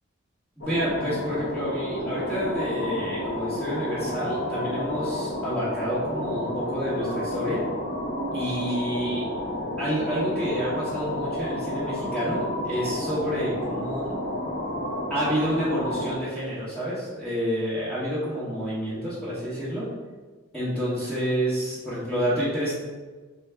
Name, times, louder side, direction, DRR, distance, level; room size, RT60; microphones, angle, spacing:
sound 1, 0.6-16.1, left 1 dB, 55° left, 0.7 m, -31 dB
voice 1, 0.6-7.6 8.3-9.3 9.8-14.2 15.1-19.8 20.5-22.7, equal, 5° left, -13 dB, 1.0 m, -29 dB
3.3 x 3.0 x 4.4 m, 1.3 s
head